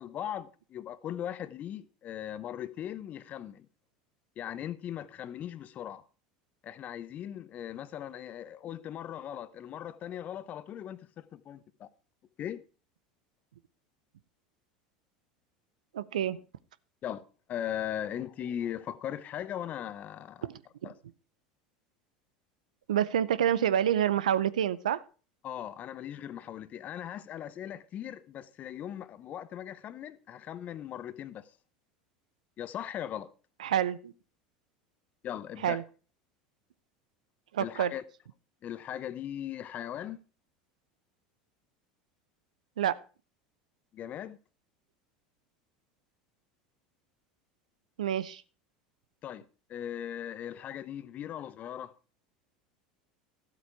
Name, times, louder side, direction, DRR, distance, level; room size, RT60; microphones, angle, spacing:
voice 1, 0.0-3.7 4.4-6.0 6.6-11.9 12.4-12.6 17.0-20.4 20.8-20.9 25.4-31.5 32.6-33.3 35.2-35.8 37.6-38.0 38.6-40.2 43.9-44.4 49.2-49.4 49.7-51.9, left 10 dB, 40° left, 0.8 m, -39 dB
voice 2, 15.9-16.4 20.4-20.9 22.9-25.0 33.6-34.1 35.6-35.8 37.5-37.9 42.8-43.0 48.0-48.4, right 10 dB, 80° right, 0.6 m, -28 dB
13.0 x 8.2 x 4.6 m
hypercardioid pair, 80°, 4 cm